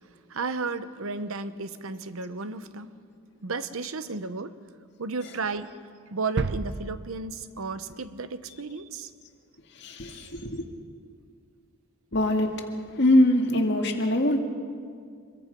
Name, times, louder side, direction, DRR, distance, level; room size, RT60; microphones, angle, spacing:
voice 1, 0.3-2.9 3.4-4.5 5.0-5.7 6.1-9.1 10.1-10.3, right 4 dB, 75° right, 12 dB, 0.9 m, -33 dB
sound 1, 6.4-8.2 8.5-8.6, right 3 dB, 50° right, 0.6 m, -33 dB
voice 2, 9.8-10.6 12.1-12.7 12.9-14.4, left 1 dB, 50° left, 3 dB, 2.0 m, -23 dB
26.0 x 22.0 x 5.3 m, 2.2 s
head